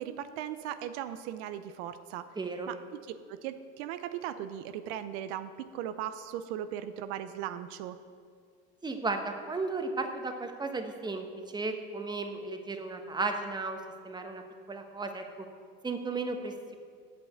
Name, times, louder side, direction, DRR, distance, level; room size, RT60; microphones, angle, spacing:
voice 1, 0.0-2.3 2.7-3.0 3.3-8.0, right 10 dB, 80° right, 11 dB, 0.6 m, -38 dB
voice 2, 2.4-2.7 8.8-13.8 14.0-14.4 14.7-15.2 15.8-16.8, right 3 dB, 15° right, 5 dB, 1.1 m, -34 dB
8.4 x 6.1 x 8.2 m, 2.1 s
supercardioid pair, 100°, 32 cm